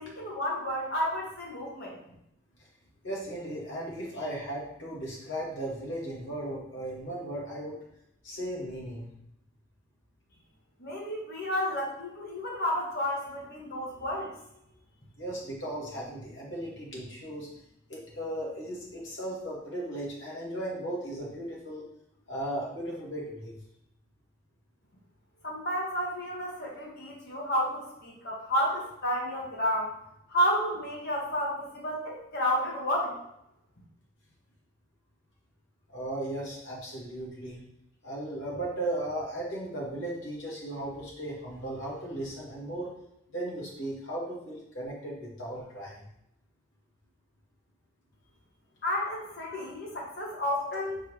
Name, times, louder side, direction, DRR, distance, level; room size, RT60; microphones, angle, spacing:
voice 1, 0.0-2.0 10.8-14.3 25.4-29.9 30.3-33.2 48.8-51.0, equal, 50° left, -3 dB, 1.8 m, -31 dB
voice 2, 3.0-7.8 8.2-9.1 15.2-17.5 17.9-21.8 22.3-23.5 35.9-37.6 38.0-42.9 43.3-46.1, right 1 dB, 65° left, -4 dB, 2.2 m, -36 dB
4.7 x 4.7 x 4.8 m, 0.78 s
head